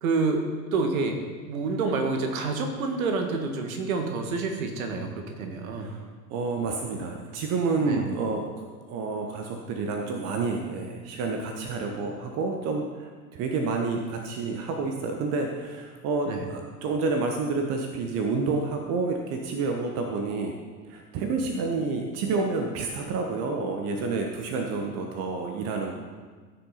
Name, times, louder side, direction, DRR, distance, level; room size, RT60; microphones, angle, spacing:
voice 1, 0.0-1.2 1.5-5.9 7.8-8.1 16.3-16.5, right 3 dB, 55° right, 4 dB, 1.6 m, -28 dB
voice 2, 5.8-8.4 8.7-20.6 20.8-25.9, right 4 dB, 30° right, 3 dB, 1.1 m, -29 dB
14.5 x 6.2 x 4.1 m, 1.5 s
figure-of-eight pair, 90°, 50 cm